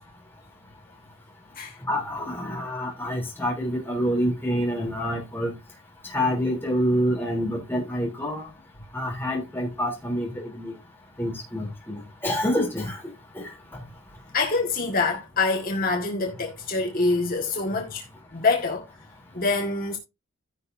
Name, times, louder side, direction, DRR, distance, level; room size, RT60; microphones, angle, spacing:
voice 1, 1.9-5.5 6.1-8.5 8.9-10.7 11.2-13.0 13.3-13.5, equal, 10° left, 3.2 m, -27 dB
voice 2, 14.3-18.0 18.3-18.9 19.3-20.0, left 3 dB, 40° left, 1.7 m, -25 dB
15.5 x 5.5 x 2.7 m
head